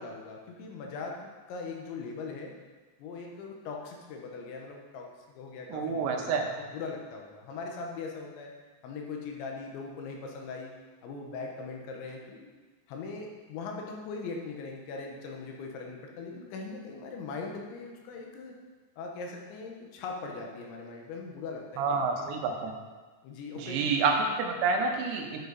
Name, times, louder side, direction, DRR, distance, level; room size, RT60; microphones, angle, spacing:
voice 1, 0.0-2.5 3.0-8.5 8.8-10.7 11.0-12.5 12.9-18.5 19.0-22.3 23.2-23.9, left 4 dB, 80° left, 1 dB, 3.3 m, -40 dB
voice 2, 5.7-6.5 21.8-22.7 23.6-25.4, right 4 dB, 75° right, 2 dB, 3.0 m, -28 dB
8.9 x 8.3 x 4.0 m, 1.3 s
omnidirectional pair, 5.5 m